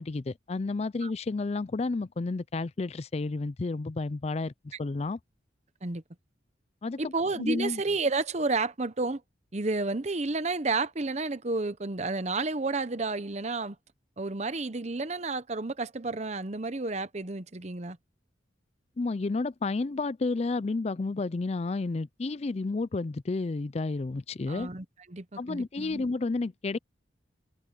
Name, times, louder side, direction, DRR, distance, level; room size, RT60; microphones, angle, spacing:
voice 1, 0.0-5.2 6.8-7.8 19.0-24.7 25.4-26.8, left 3 dB, 35° left, 0.4 m, -31 dB
voice 2, 7.0-9.2 9.5-13.8 14.2-18.0 24.5-26.0, right 3 dB, 35° right, 0.9 m, -31 dB
head